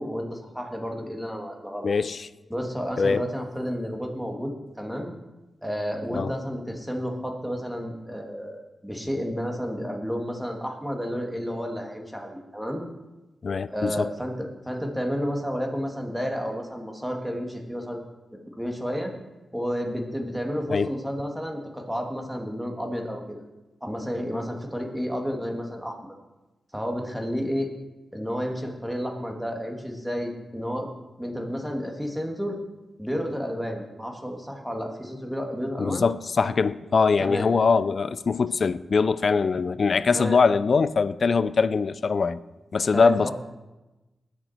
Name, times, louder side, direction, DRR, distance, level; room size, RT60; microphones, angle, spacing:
voice 1, 0.0-1.9 2.5-5.1 5.6-12.8 13.7-18.0 18.3-19.1 19.5-23.4 23.8-26.0 26.7-27.7 28.1-30.9 31.2-32.6 33.0-36.1 37.2-37.5 40.1-40.4 42.9-43.3, equal, 5° right, 2.5 m, -31 dB
voice 2, 1.8-2.3 3.0-3.2 6.1-6.3 13.4-14.1 20.7-20.9 35.8-42.4 42.7-43.3, left 5 dB, 60° left, 0.5 m, -22 dB
20.0 x 6.6 x 4.5 m
cardioid pair, 60°, 0 cm